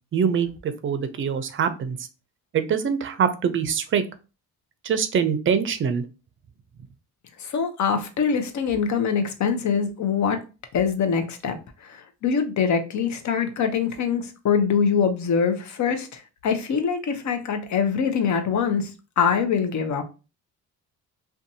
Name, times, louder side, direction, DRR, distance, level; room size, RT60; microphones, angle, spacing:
voice 1, 0.1-2.0 2.5-4.0 4.8-6.0, right 7 dB, 35° right, 0.5 m, -24 dB
voice 2, 7.4-10.4 10.7-18.9 19.2-20.0, left 6 dB, 55° left, 0.7 m, -24 dB
2.6 x 2.3 x 2.6 m
supercardioid pair, 75°, 35 cm